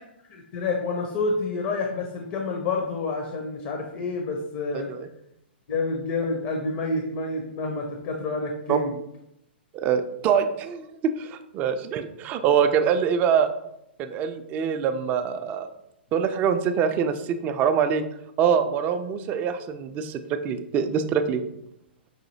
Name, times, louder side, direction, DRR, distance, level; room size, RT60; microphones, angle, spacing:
voice 1, 0.3-4.9 5.7-8.9, left 3 dB, 40° left, 2 dB, 0.6 m, -28 dB
voice 2, 9.7-10.9 11.2-13.5 14.0-15.7 16.1-18.0 18.4-20.2 20.4-21.4, right 7 dB, 25° right, 9 dB, 0.3 m, -24 dB
5.6 x 2.6 x 2.6 m, 0.81 s
figure-of-eight pair, 115°, 6 cm